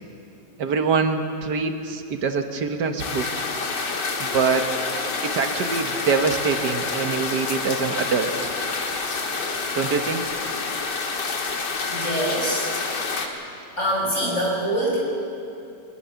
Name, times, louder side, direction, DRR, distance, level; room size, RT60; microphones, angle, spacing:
voice 1, 0.6-3.3 4.2-4.7 5.2-8.3 9.8-10.2, right 5 dB, 75° right, 6 dB, 1.8 m, -24 dB
sound 1, 3.0-13.3, left 4 dB, 85° left, 2.3 m, -28 dB
voice 2, 11.9-12.7 13.8-15.0, right 1 dB, 45° left, -3 dB, 6.1 m, -24 dB
23.0 x 20.0 x 7.0 m, 2.6 s
omnidirectional pair, 1.8 m